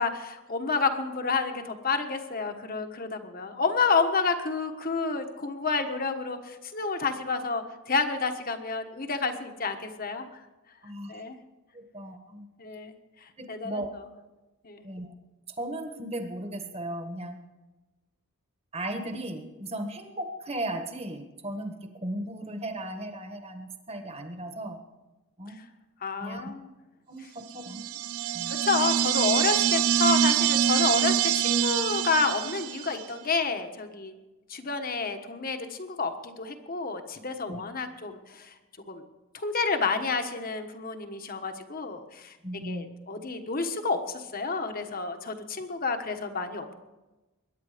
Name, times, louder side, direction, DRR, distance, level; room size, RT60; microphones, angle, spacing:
voice 1, 0.0-10.4 11.1-11.4 12.6-12.9 13.2-13.8 14.6-14.8 25.6-25.7 26.0-26.7 28.6-34.1 34.5-38.5 38.9-39.0 39.3-42.4 42.6-46.7, left 4 dB, 40° left, 6 dB, 1.3 m, -29 dB
voice 2, 10.8-11.2 11.7-12.5 13.4-13.9 14.8-15.1 15.5-17.4 18.7-24.8 25.4-25.6 26.2-26.4 27.1-27.8 28.3-28.5 37.5-37.6 42.4-42.9, right 1 dB, 30° right, 6 dB, 1.5 m, -36 dB
sound 1, 27.6-33.0, right 10 dB, 80° right, 0.4 m, -25 dB
22.5 x 10.5 x 5.1 m, 1.1 s
head